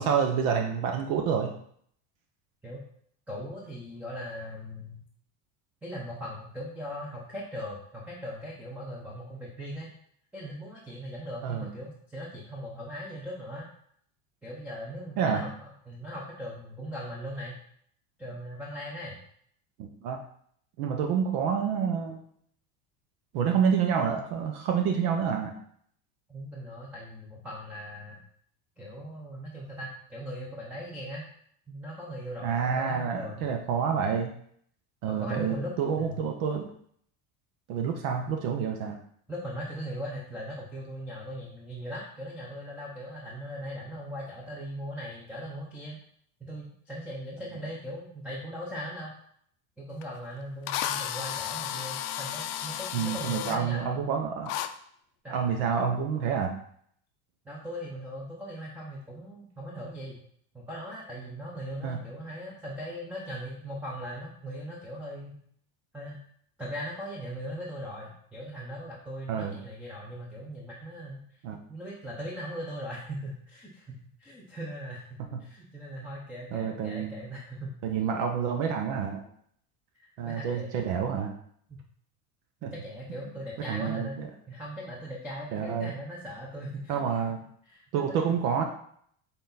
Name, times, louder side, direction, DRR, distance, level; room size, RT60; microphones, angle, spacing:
voice 1, 0.0-1.5 11.4-11.7 15.2-15.4 19.8-20.2 20.8-22.2 23.3-25.5 32.4-34.3 35.0-36.7 37.7-39.0 52.9-54.5 55.3-56.5 61.8-62.0 69.3-69.5 71.4-71.6 75.3-75.4 76.5-77.1 77.8-79.2 80.2-81.3 82.6-82.7 83.7-84.3 85.5-85.9 86.9-87.4 87.9-88.6, right 7 dB, 65° right, 4 dB, 0.9 m, -28 dB
voice 2, 3.3-5.0 5.8-9.9 10.3-13.7 14.4-17.6 18.2-19.2 26.3-28.2 28.8-31.2 31.7-33.4 35.1-36.2 39.3-46.0 46.5-49.1 49.8-54.0 55.2-55.5 57.4-60.2 60.5-65.3 65.9-66.2 66.6-71.2 71.7-77.7 79.9-80.7 81.7-81.8 82.6-84.2 84.5-87.2 87.7-88.2, equal, 5° right, -4 dB, 0.8 m, -39 dB
Drill, 50.0-50.1 50.7-53.6 54.5-54.7, left 11 dB, 55° left, 0.5 m, -33 dB
6.6 x 4.0 x 4.0 m, 0.65 s
cardioid pair, 165°, 39 cm